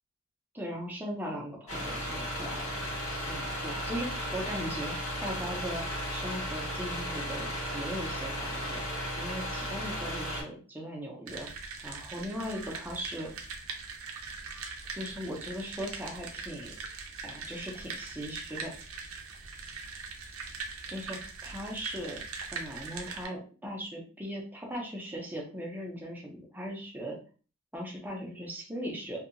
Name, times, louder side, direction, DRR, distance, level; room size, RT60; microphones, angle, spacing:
voice 1, 0.5-2.8 3.3-5.8 6.1-8.8 9.2-11.5 11.8-13.3 14.9-16.7 17.2-18.7 20.9-22.2 22.5-27.2 27.7-29.2, equal, 10° right, -1 dB, 0.5 m, -38 dB
sound 1, 1.7-10.4, equal, 70° left, 1.4 m, -35 dB
sound 2, 11.3-23.3, right 4 dB, 75° right, 0.5 m, -41 dB
2.7 x 2.3 x 2.5 m, 0.39 s
head